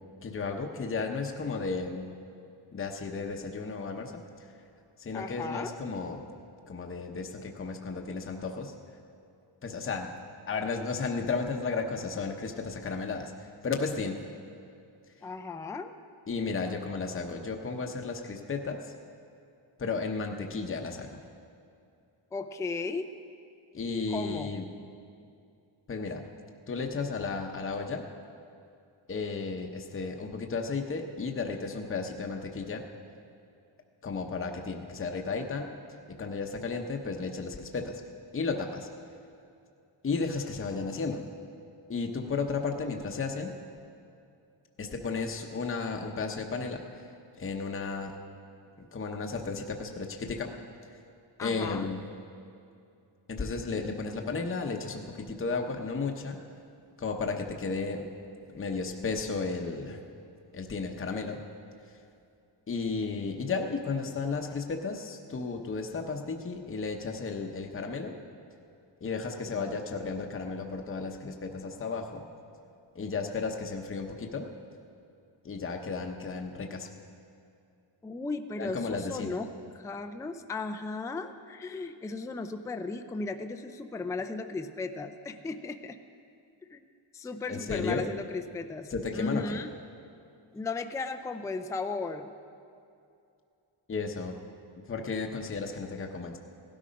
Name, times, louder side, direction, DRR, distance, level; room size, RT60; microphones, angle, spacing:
voice 1, 0.2-2.1 2.7-4.5 5.0-6.2 6.7-8.7 9.6-10.1 10.5-14.2 16.3-18.9 19.8-21.2 23.7-24.7 25.9-26.2 26.7-28.0 29.1-32.8 34.0-35.7 36.1-38.0 38.3-38.9 40.0-41.2 41.9-43.5 44.8-47.1 47.4-48.2 48.9-50.5 51.4-52.0 53.3-56.4 57.0-58.1 58.5-60.0 60.5-61.4 62.7-68.1 69.0-72.3 72.9-74.5 75.4-76.9 78.6-79.4 87.5-88.1 88.9-89.6 93.9-94.3 94.9-96.4, left 4 dB, 25° left, 2 dB, 0.8 m, -33 dB
voice 2, 5.1-5.8 15.2-15.9 22.3-23.1 24.1-24.5 40.9-41.0 51.4-51.9 69.5-69.7 78.0-86.0 86.6-86.8 87.1-89.7 90.5-92.3, left 3 dB, 5° left, 7 dB, 0.3 m, -36 dB
17.0 x 12.5 x 5.2 m, 2.6 s
wide cardioid pair, 180°, 46 cm